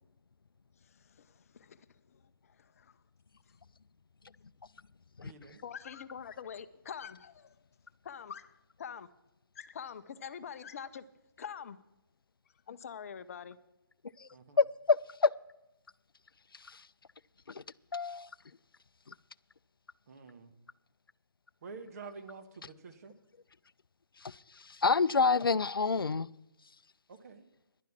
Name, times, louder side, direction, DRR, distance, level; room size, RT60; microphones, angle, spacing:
voice 1, 0.8-3.0 5.6-7.6 8.0-9.1 9.5-11.0 11.4-11.8 12.7-13.6, left 7 dB, 40° left, 0.6 m, -45 dB
voice 2, 5.2-5.6 14.3-14.6 20.1-20.5 21.6-23.2 27.1-27.5, right 4 dB, 45° right, 1.3 m, -48 dB
voice 3, 14.6-15.3 16.5-16.9 17.5-17.6 17.9-18.3 19.1-19.2 24.2-26.3, left 4 dB, 85° left, 0.4 m, -28 dB
11.0 x 10.5 x 6.0 m
figure-of-eight pair, 145°, 12 cm